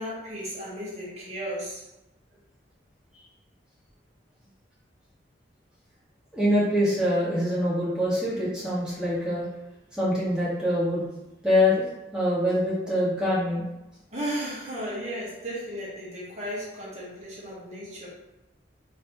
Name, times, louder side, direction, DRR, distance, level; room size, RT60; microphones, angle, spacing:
voice 1, 0.0-1.8 14.1-18.1, equal, 35° right, -6 dB, 1.1 m, -34 dB
voice 2, 6.3-9.4 10.0-11.0 11.4-11.8 12.1-13.6, left 1 dB, 5° right, -9 dB, 1.1 m, -24 dB
3.3 x 2.9 x 3.0 m, 0.93 s
head